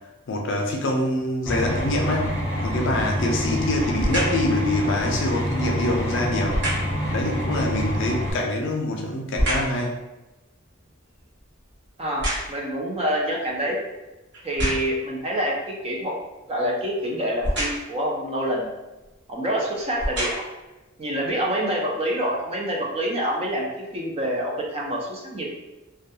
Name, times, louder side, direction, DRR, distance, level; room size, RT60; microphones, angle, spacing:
voice 1, 0.3-6.6 7.1-10.0, left 1 dB, 60° left, 1 dB, 0.4 m, -25 dB
sound 1, 1.5-8.3, equal, 15° left, 0.7 m, -27 dB
sound 2, 3.9-4.5 6.5-7.0 8.4-9.8 10.3-12.8 13.5-13.6 14.3-15.1 17.4-18.0 19.0-19.1 19.8-20.6 21.3-21.4, equal, 60° right, 1.0 m, -28 dB
voice 2, 12.0-13.8 14.4-16.2 16.5-18.7 19.3-20.3 21.0-25.5, equal, 30° right, -2 dB, 0.4 m, -26 dB
2.2 x 2.2 x 2.7 m, 1.0 s
head